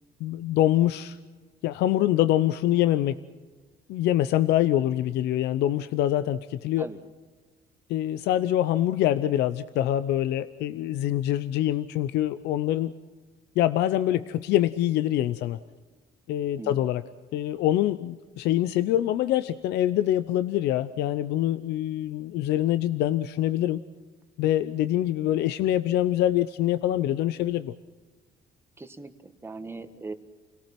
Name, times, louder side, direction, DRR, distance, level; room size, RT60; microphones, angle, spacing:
voice 1, 0.2-1.2 1.6-3.2 3.9-6.9 7.9-12.9 13.6-15.6 16.3-17.0 17.3-23.8 24.4-27.7, left 13 dB, 80° left, 12 dB, 0.7 m, -25 dB
voice 2, 16.6-16.9 28.8-30.1, right 3 dB, 15° right, 8 dB, 1.6 m, -39 dB
29.5 x 18.0 x 6.0 m, 1.3 s
cardioid pair, 110°, 17 cm